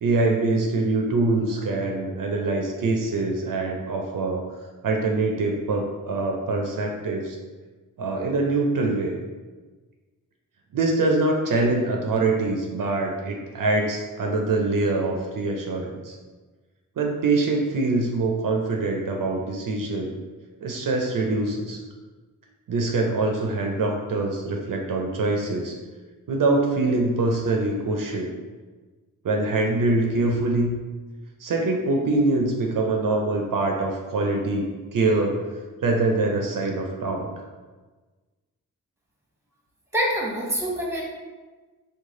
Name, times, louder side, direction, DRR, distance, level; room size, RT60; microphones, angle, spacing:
voice 1, 0.0-4.4 4.8-7.4 8.0-9.1 10.7-16.2 17.0-20.1 20.6-21.8 22.7-25.7 26.3-28.3 29.2-30.8 31.4-35.4 35.8-37.3, right 2 dB, 65° right, 1 dB, 0.5 m, -24 dB
voice 2, 39.9-41.0, equal, 10° right, -3 dB, 0.9 m, -25 dB
3.1 x 2.3 x 3.6 m, 1.3 s
cardioid pair, 60°, 35 cm